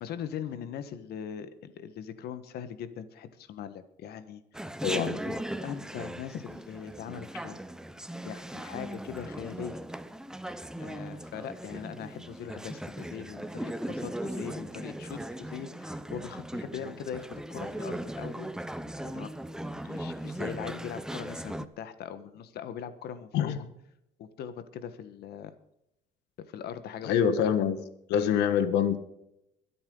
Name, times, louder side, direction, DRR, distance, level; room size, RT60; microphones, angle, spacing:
voice 1, 0.0-4.8 5.2-7.6 8.2-9.8 10.8-18.5 19.0-19.3 19.8-23.5 24.2-25.5 26.5-27.2, left 8 dB, 70° left, 12 dB, 1.5 m, -41 dB
Chatter, 4.5-21.7, right 1 dB, 5° right, 0.8 m, -38 dB
voice 2, 4.8-5.2 23.3-23.6 27.0-27.8 28.1-29.0, left 8 dB, 85° left, 11 dB, 1.5 m, -25 dB
23.5 x 8.7 x 4.0 m, 0.80 s
cardioid pair, 110°, 17 cm